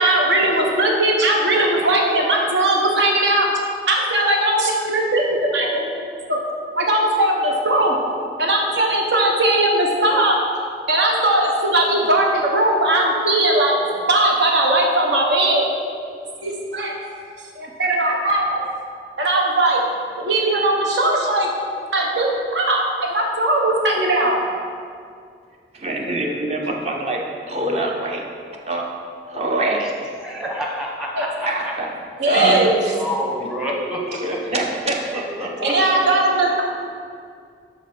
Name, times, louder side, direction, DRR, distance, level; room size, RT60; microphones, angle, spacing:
voice 1, 0.0-3.5 3.9-6.4 6.8-8.0 8.4-10.4 10.9-13.8 14.1-15.6 16.4-16.9 17.5-18.6 19.2-19.8 20.2-21.5 21.9-22.8 23.1-24.4 31.2-31.3 32.2-32.8 35.6-36.6, right 1 dB, 75° right, -1 dB, 1.2 m, -19 dB
voice 2, 25.7-28.3 28.6-28.8 29.3-30.2 31.4-31.9 32.3-32.6 34.2-36.0, right 2 dB, 35° right, 0 dB, 0.8 m, -25 dB
voice 3, 30.2-31.7 32.3-34.5 35.4-35.8, equal, 5° right, -2 dB, 0.9 m, -28 dB
11.5 x 4.1 x 4.3 m, 2.3 s
head